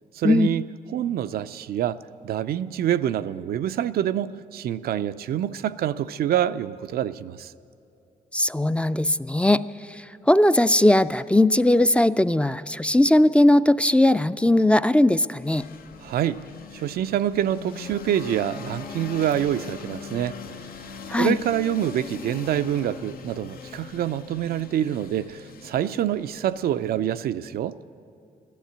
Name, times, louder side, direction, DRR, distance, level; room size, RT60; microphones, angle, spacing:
voice 1, 0.1-0.6 0.9-7.5 16.0-16.4 16.7-20.4 21.2-27.8, right 11 dB, 85° right, 0.4 m, -26 dB
voice 2, 8.3-9.6 10.3-15.6 21.1-21.4, left 1 dB, 10° left, 0.3 m, -19 dB
sound 1, 15.4-27.2, left 6 dB, 75° left, 0.7 m, -41 dB
15.0 x 12.0 x 8.1 m
cardioid pair, 70°, 15 cm